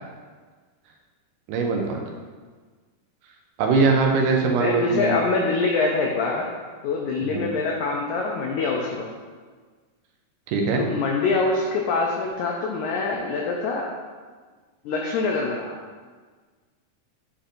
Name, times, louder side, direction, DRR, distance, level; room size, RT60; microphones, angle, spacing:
voice 1, 1.5-2.0 3.6-5.1 7.2-7.4 10.5-10.8, right 4 dB, 80° right, 1 dB, 2.1 m, -21 dB
voice 2, 4.6-6.5 6.8-9.1 10.8-13.9 14.8-15.7, left 3 dB, 90° left, 0 dB, 1.6 m, -24 dB
9.9 x 4.3 x 2.6 m, 1.5 s
omnidirectional pair, 4.0 m